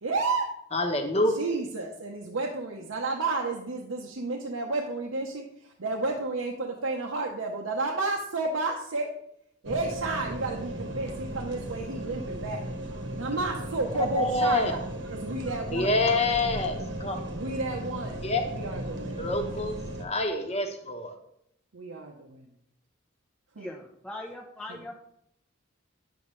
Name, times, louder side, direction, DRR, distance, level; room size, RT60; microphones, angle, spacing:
voice 1, 0.0-0.5 1.3-9.2 9.6-12.6 13.1-14.8 15.1-16.0 17.3-18.2 18.5-19.4 21.7-22.4 23.5-23.7 24.7-24.8, right 3 dB, 90° right, 0 dB, 0.8 m, -31 dB
voice 2, 0.7-1.3 14.2-14.7 15.7-17.2 18.2-18.4 19.2-19.7 20.0-21.1, left 2 dB, 30° left, 5 dB, 1.0 m, -26 dB
sound 1, 9.6-20.0, right 1 dB, 65° right, 1.1 m, -36 dB
voice 3, 23.6-24.9, left 1 dB, 5° left, 0 dB, 0.6 m, -40 dB
9.1 x 7.1 x 3.2 m, 0.74 s
head